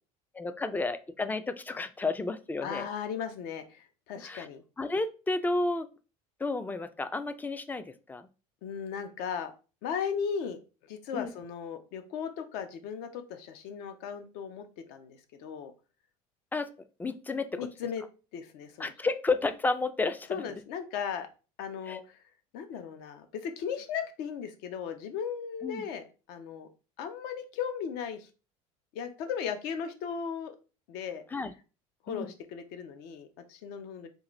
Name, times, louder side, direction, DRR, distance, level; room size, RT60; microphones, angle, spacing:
voice 1, 0.3-2.9 4.2-4.5 4.8-5.9 6.4-8.3 11.1-11.3 16.5-16.7 17.0-17.7 18.8-20.4 21.9-22.0 25.6-25.8 31.3-31.5 32.1-32.3, left 3 dB, 10° left, 11 dB, 0.3 m, -31 dB
voice 2, 2.6-4.6 8.6-9.5 9.8-10.6 10.9-15.7 17.6-18.0 18.3-18.9 20.3-21.3 21.6-22.2 22.5-26.0 26.3-26.7 27.0-28.3 28.9-30.6 30.9-31.2 32.0-34.1, left 7 dB, 65° left, 8 dB, 0.7 m, -37 dB
3.7 x 2.5 x 3.0 m, 0.33 s
supercardioid pair, 100°, 17 cm